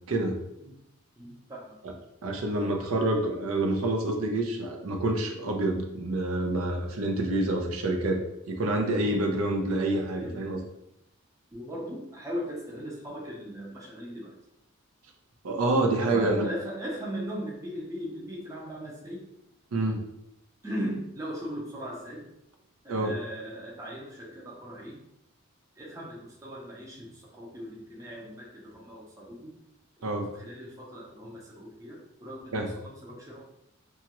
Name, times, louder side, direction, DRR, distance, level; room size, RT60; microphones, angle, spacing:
voice 1, 1.2-1.8 10.2-10.4 11.5-14.3 16.0-19.2 20.6-22.3 22.8-25.0 25.8-29.5 30.1-33.4, equal, 15° right, -4 dB, 0.5 m, -38 dB
voice 2, 2.2-8.2 8.5-10.6 15.4-16.5 19.7-20.0 22.9-23.1 30.0-30.3 32.5-32.7, right 2 dB, 85° right, 3 dB, 0.5 m, -27 dB
2.9 x 2.4 x 2.9 m, 0.83 s
head